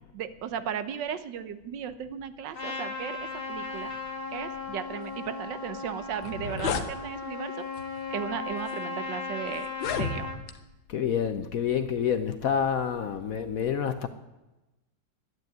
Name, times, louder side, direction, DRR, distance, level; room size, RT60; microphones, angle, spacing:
voice 1, 0.1-3.9 4.3-7.5 8.1-9.7 10.0-10.3, right 8 dB, 75° right, 1.5 m, -36 dB
Trumpet, 2.5-10.4, left 4 dB, 30° left, 1.8 m, -36 dB
sound 1, 5.8-5.9 6.1-6.9 7.8-8.0 8.7-8.8 9.6-10.6, left 6 dB, 90° left, 1.8 m, -31 dB
voice 2, 10.9-14.1, left 8 dB, 60° left, 1.0 m, -28 dB
12.0 x 9.4 x 9.0 m
omnidirectional pair, 2.1 m